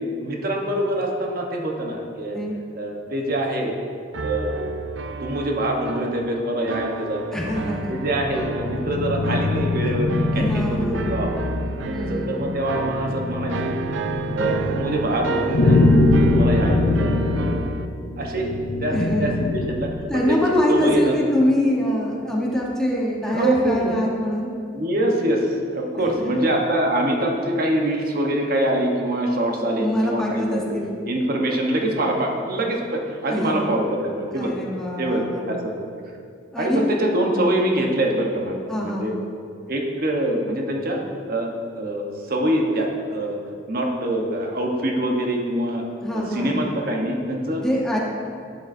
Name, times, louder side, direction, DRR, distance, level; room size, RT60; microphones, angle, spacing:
voice 1, 0.0-2.4 2.7-3.8 4.2-4.7 5.2-7.6 7.9-11.4 11.8-14.0 14.3-15.8 16.2-17.6 18.2-18.5 18.8-20.4 20.7-21.2 23.2-23.9 24.7-30.8 31.1-34.5 35.0-35.7 36.6-39.1 39.7-41.0 41.3-43.4 43.7-45.8 46.1-47.6 47.9-48.0, right 1 dB, 50° right, 1 dB, 1.1 m, -24 dB
sound 1, 4.1-17.9, right 3 dB, 80° right, 0.5 m, -31 dB
voice 2, 7.3-7.9 10.3-11.1 11.9-12.4 18.9-19.5 20.1-24.5 26.0-26.3 29.8-31.0 33.3-33.6 34.3-35.5 36.5-36.9 38.7-39.1 46.0-46.6 47.6-48.0, left 1 dB, 5° left, -4 dB, 1.1 m, -24 dB
sound 2, 7.5-20.1, left 2 dB, 60° left, 0.6 m, -23 dB
11.5 x 6.9 x 2.7 m, 2.4 s
head